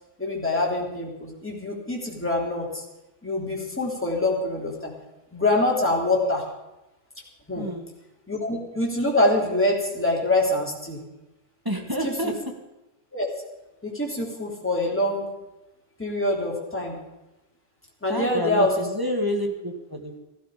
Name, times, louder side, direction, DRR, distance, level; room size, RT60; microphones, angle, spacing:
voice 1, 0.2-2.8 3.2-4.9 5.3-6.4 7.5-7.6 8.3-11.0 12.0-12.3 13.1-13.3 13.8-15.3 16.0-17.0 18.0-18.7, left 2 dB, 5° left, -2 dB, 3.4 m, -25 dB
voice 2, 7.5-7.9 11.6-12.3 18.1-20.2, equal, 10° right, 2 dB, 1.8 m, -29 dB
16.0 x 15.5 x 5.1 m, 0.97 s
omnidirectional pair, 1.9 m